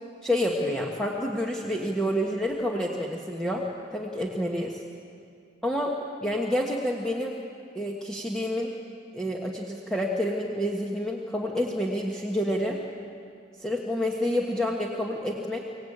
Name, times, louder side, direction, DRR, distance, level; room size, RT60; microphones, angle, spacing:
voice 1, 0.2-4.8 5.6-5.9 6.2-7.4 7.7-8.7 9.1-12.8 13.6-15.6, equal, 5° left, -2 dB, 1.6 m, -28 dB
24.5 x 18.0 x 8.8 m, 2.4 s
head